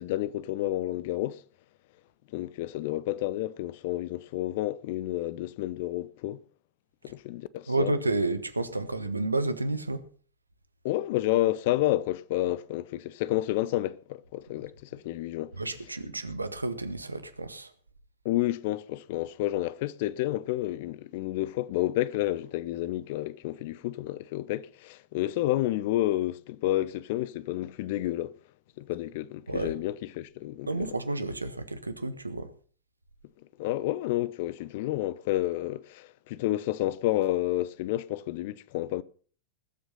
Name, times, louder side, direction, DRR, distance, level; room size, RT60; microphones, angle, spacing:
voice 1, 0.0-1.4 2.3-6.4 7.0-7.9 10.8-15.6 18.2-28.3 28.8-30.9 33.6-39.0, left 15 dB, 50° left, 0.7 m, -30 dB
voice 2, 7.7-10.0 15.6-17.7 29.5-29.7 30.7-32.5, right 2 dB, 80° right, 1.2 m, -31 dB
19.5 x 8.0 x 5.6 m
figure-of-eight pair, 90°, 0 cm